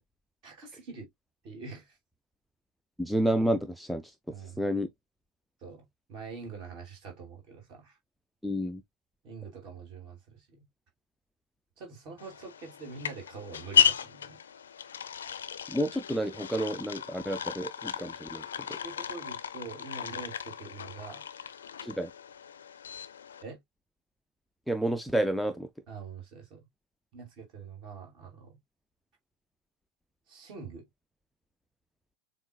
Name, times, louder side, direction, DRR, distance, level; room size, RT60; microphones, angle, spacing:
voice 1, 0.4-1.1 1.4-2.0 4.3-4.6 5.6-8.0 9.2-10.6 11.8-14.4 18.8-21.2 23.4-23.6 25.9-26.7 27.1-28.6 30.3-30.9, right 4 dB, 40° right, 2.5 m, -45 dB
voice 2, 3.0-4.9 8.4-8.8 15.7-18.8 21.8-22.1 24.7-25.7, right 1 dB, ahead, 0.4 m, -30 dB
sound 1, 12.2-23.4, left 8 dB, 65° left, 0.4 m, -33 dB
7.0 x 2.4 x 2.2 m
figure-of-eight pair, 90°, 0 cm